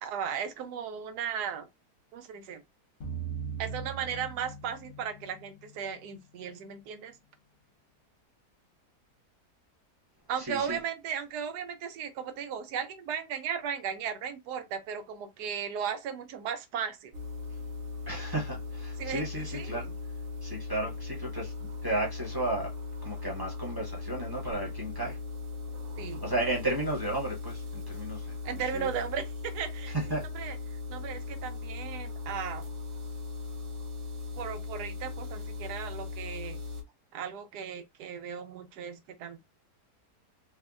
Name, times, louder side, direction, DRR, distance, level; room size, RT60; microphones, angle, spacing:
voice 1, 0.0-1.7 2.1-2.6 3.6-7.2 10.3-17.1 19.0-19.9 26.0-26.2 28.4-30.6 30.9-32.7 34.4-36.6 37.1-39.4, right 7 dB, 80° right, 1.2 m, -36 dB
sound 1, 3.0-5.4, right 6 dB, 55° left, 1.0 m, -38 dB
voice 2, 10.5-10.8 18.1-19.9 20.4-22.7 23.0-25.2 26.2-28.3 28.7-28.9 29.9-30.2, right 1 dB, 20° right, 0.7 m, -33 dB
sound 2, 17.1-36.8, left 4 dB, 60° right, 0.8 m, -38 dB
3.4 x 2.1 x 2.3 m
omnidirectional pair, 1.7 m